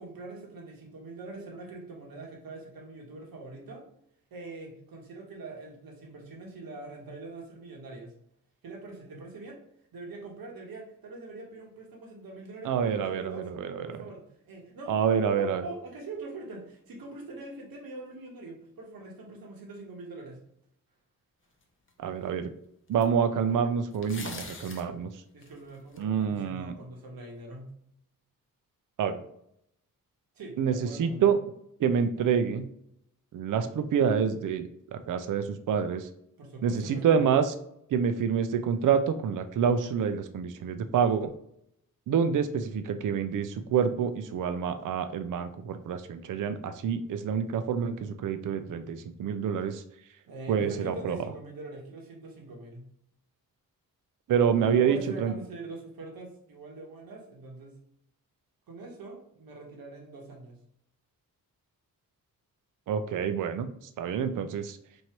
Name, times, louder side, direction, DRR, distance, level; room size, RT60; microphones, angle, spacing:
voice 1, 0.0-3.8 4.3-8.1 8.6-9.6 9.9-13.5 13.8-20.4 25.3-27.7 30.3-31.4 36.4-37.3 50.3-52.9 54.5-57.7 58.7-60.6, right 2 dB, 90° right, -1 dB, 1.2 m, -43 dB
voice 2, 12.6-14.0 14.9-15.6 22.0-22.5 22.9-25.1 26.0-26.7 29.0-29.2 30.6-31.4 31.8-32.7 33.3-36.1 36.6-37.5 37.9-41.3 42.1-49.8 50.5-51.2 54.3-55.3 62.9-63.7 64.0-64.8, right 7 dB, 65° right, 8 dB, 0.5 m, -27 dB
sound 1, 21.9-22.0 23.0-23.1 23.9-24.9 25.4-26.0, left 3 dB, 35° left, 0.7 m, -42 dB
3.1 x 2.7 x 4.4 m, 0.73 s
cardioid pair, 85°, 34 cm